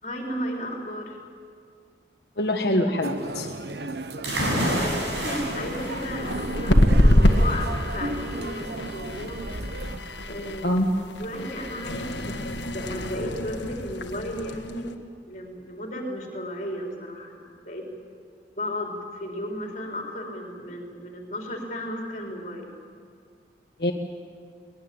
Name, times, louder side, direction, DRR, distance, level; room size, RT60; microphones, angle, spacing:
voice 1, 0.0-1.2 4.6-9.4 10.3-10.8 11.2-14.9 15.3-17.8 18.6-22.7, equal, 40° left, 1 dB, 4.1 m, -34 dB
voice 2, 2.4-3.5 10.6-10.9 23.8-23.9, left 1 dB, 65° left, 2 dB, 1.5 m, -24 dB
sound 1, 3.0-10.0, right 2 dB, 70° right, 1.1 m, -35 dB
sound 2, 4.2-14.9, left 1 dB, 85° left, 1.7 m, -26 dB
sound 3, 4.2-11.7, equal, 90° right, 6.4 m, -32 dB
22.5 x 20.0 x 8.8 m, 2.2 s
head